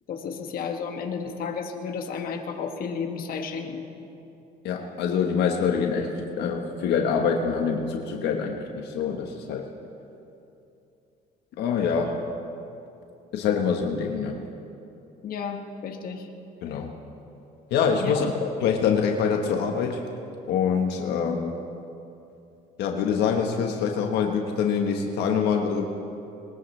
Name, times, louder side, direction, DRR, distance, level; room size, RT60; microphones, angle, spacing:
voice 1, 0.1-3.8 15.2-16.3 18.0-18.3, left 6 dB, 60° left, 3 dB, 1.5 m, -32 dB
voice 2, 4.6-9.7 11.6-12.2 13.3-14.4 16.6-16.9 17.7-20.0 20.5-21.6 22.8-25.8, left 6 dB, 80° left, 2 dB, 1.3 m, -25 dB
21.0 x 20.0 x 3.3 m, 2.8 s
cardioid pair, 110°, 17 cm